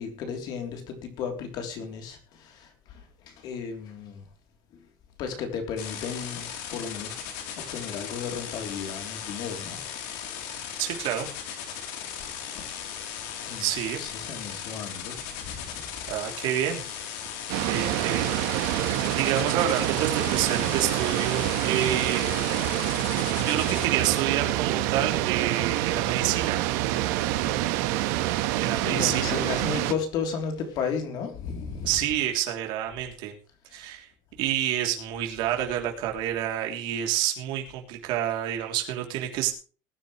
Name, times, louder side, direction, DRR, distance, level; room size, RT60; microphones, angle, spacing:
voice 1, 0.0-4.3 5.2-7.2 7.5-9.8 10.4-10.7 13.1-13.7 14.0-15.8 17.7-18.1 27.1-27.5 28.1-32.0 33.7-33.9, left 6 dB, 50° left, 3.4 m, -35 dB
sound 1, 5.8-23.9, left 8 dB, 85° left, 3.5 m, -37 dB
voice 2, 10.8-11.3 13.6-14.0 16.1-17.0 17.7-18.3 19.1-22.7 23.4-26.6 28.6-29.4 31.8-33.3 33.7-34.1 34.4-39.5, right 11 dB, 60° right, 3.2 m, -28 dB
sound 2, 17.5-29.9, right 15 dB, 85° right, 1.4 m, -26 dB
20.0 x 10.0 x 3.2 m
cardioid pair, 170°, 9 cm